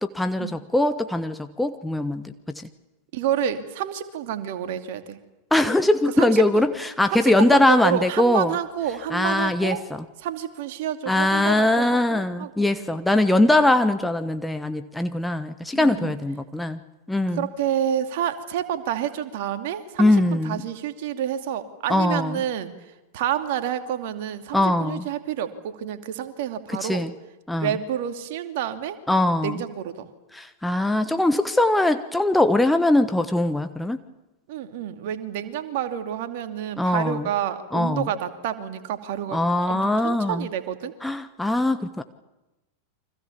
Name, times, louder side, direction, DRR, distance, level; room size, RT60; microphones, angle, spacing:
voice 1, 0.0-2.7 5.5-8.5 9.1-10.0 11.1-16.8 17.1-17.5 20.0-20.7 21.9-22.4 24.5-25.1 26.7-27.1 27.5-27.8 29.1-29.6 30.3-34.0 36.8-37.3 37.7-38.1 39.3-40.5 41.0-42.0, left 1 dB, 5° left, 8 dB, 1.2 m, -21 dB
voice 2, 3.1-5.2 6.2-6.6 7.1-9.8 10.2-12.9 15.7-16.1 17.3-22.7 23.1-27.1 27.6-29.0 29.4-30.1 34.5-39.4 39.7-40.9, right 10 dB, 50° right, 8 dB, 2.6 m, -29 dB
29.5 x 25.0 x 7.2 m, 1.0 s
figure-of-eight pair, 90°, 0 cm